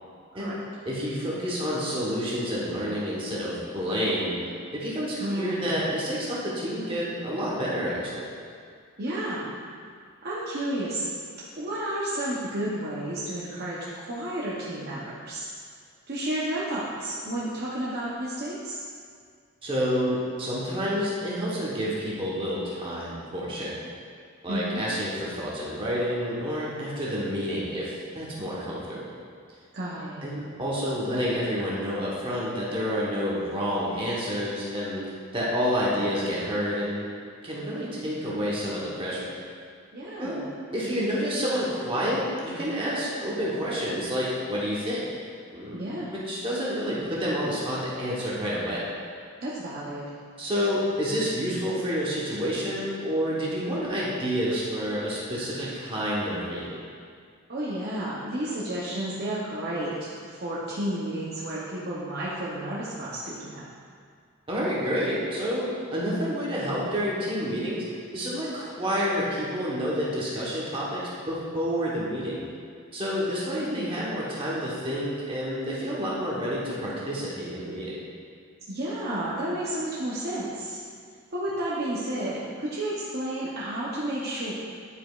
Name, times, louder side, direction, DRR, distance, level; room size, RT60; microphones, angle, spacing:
voice 1, 0.8-4.4 4.7-8.3 19.6-23.7 24.4-29.0 30.2-35.0 35.3-37.1 37.4-39.3 40.2-40.4 40.7-45.0 45.5-45.8 46.1-48.8 50.4-56.8 64.5-67.9 68.1-72.4 72.9-78.0, equal, 25° right, -6 dB, 1.0 m, -29 dB
voice 2, 5.2-5.7 9.0-9.6 10.2-11.1 11.6-15.5 16.1-18.8 24.5-24.8 29.7-30.2 39.9-40.4 45.7-46.1 49.4-50.1 57.5-63.7 73.4-73.9 78.7-80.8 81.3-84.5, right 1 dB, 50° right, -7 dB, 0.7 m, -31 dB
9.9 x 4.9 x 2.4 m, 2.1 s
head